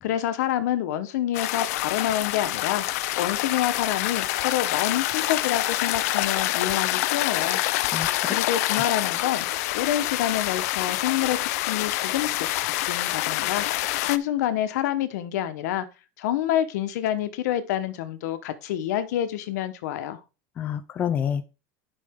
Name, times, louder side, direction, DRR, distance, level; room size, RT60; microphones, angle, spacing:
voice 1, 0.0-2.9 3.2-7.6 8.3-9.5 9.7-13.7 14.0-15.9 16.2-20.2, left 11 dB, 85° left, 1.2 m, -27 dB
sound 1, 1.3-14.2, left 16 dB, 70° left, 0.6 m, -26 dB
voice 2, 7.8-8.3 20.6-21.5, left 8 dB, 20° left, 0.5 m, -28 dB
11.0 x 5.4 x 3.7 m
cardioid pair, 180°, 9 cm